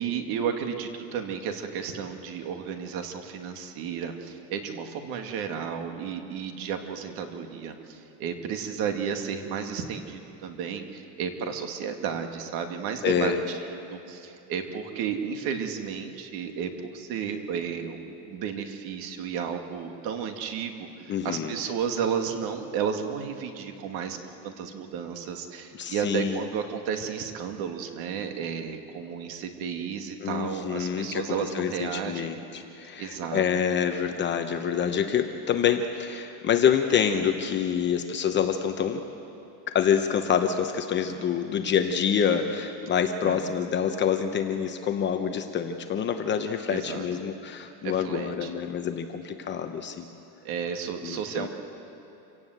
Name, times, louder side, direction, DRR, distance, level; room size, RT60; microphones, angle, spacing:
voice 1, 0.0-20.7 21.0-24.2 24.4-32.4 33.0-33.4 43.2-43.4 46.7-47.0 47.8-48.5 50.4-51.5, right 7 dB, 50° right, 5 dB, 2.3 m, -33 dB
voice 2, 13.0-13.4 21.1-21.5 25.8-26.4 30.2-31.2 31.5-39.0 39.7-50.1 51.0-51.5, left 8 dB, 25° left, 6 dB, 0.9 m, -27 dB
27.0 x 17.5 x 8.0 m, 2.8 s
supercardioid pair, 155°, 48 cm